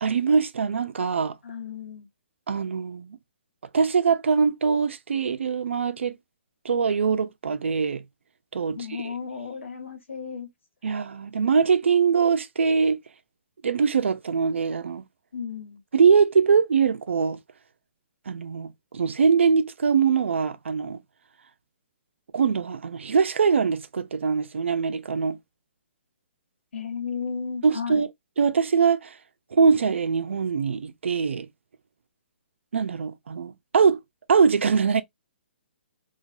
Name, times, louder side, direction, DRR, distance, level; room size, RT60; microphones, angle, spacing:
voice 1, 0.0-1.4 2.5-3.2 3.7-6.2 6.6-8.0 8.5-8.8 10.8-13.0 13.6-15.0 15.9-17.4 18.3-21.0 22.3-25.4 27.6-28.1 28.4-29.2 29.5-31.5 32.7-34.0 34.3-35.0, right 6 dB, 80° right, 0.5 m, -22 dB
voice 2, 1.4-2.1 8.7-10.5 15.3-15.8 26.7-28.1, left 6 dB, 85° left, 1.4 m, -34 dB
3.0 x 2.3 x 2.5 m
hypercardioid pair, 160°, 6 cm